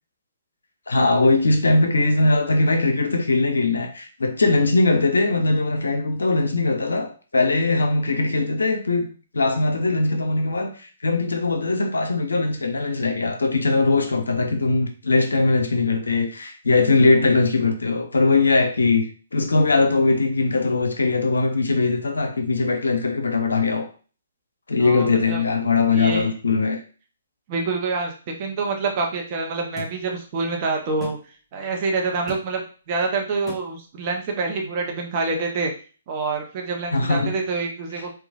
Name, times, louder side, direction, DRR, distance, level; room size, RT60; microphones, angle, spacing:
voice 1, 0.9-9.1 9.3-10.7 11.0-23.9 24.7-26.8 36.9-37.4, left 3 dB, 80° left, 0.6 m, -20 dB
voice 2, 24.8-25.4 25.9-26.3 27.5-31.2 31.5-32.6 32.9-35.7 36.1-38.2, right 3 dB, 35° right, 0.7 m, -26 dB
sound 1, 29.8-29.9 31.0-31.2 32.3-32.4 33.5-33.6, equal, 10° left, 0.8 m, -35 dB
3.0 x 2.3 x 2.4 m
figure-of-eight pair, 135°, 0 cm